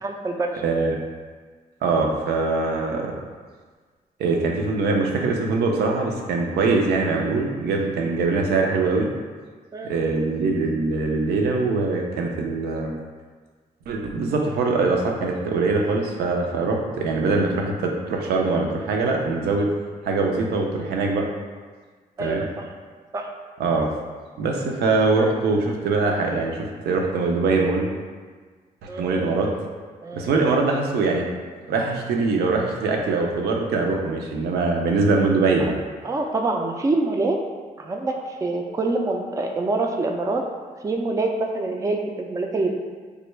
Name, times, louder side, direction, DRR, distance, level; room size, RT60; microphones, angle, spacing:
voice 1, 0.0-0.5 9.7-9.9 22.2-22.6 23.1-23.3 28.9-29.2 30.0-30.3 35.6-35.7 36.0-37.4 37.8-40.5 40.8-42.7, right 2 dB, 20° right, 2 dB, 0.3 m, -25 dB
voice 2, 0.6-1.0 1.8-3.1 4.2-9.1 9.8-12.9 13.9-19.7 20.0-21.3 22.2-22.4 23.6-23.9 24.4-27.9 29.0-29.5 30.1-31.2 31.7-35.8, right 3 dB, 85° right, 1 dB, 0.5 m, -22 dB
3.3 x 2.1 x 3.1 m, 1.5 s
cardioid pair, 70°, 16 cm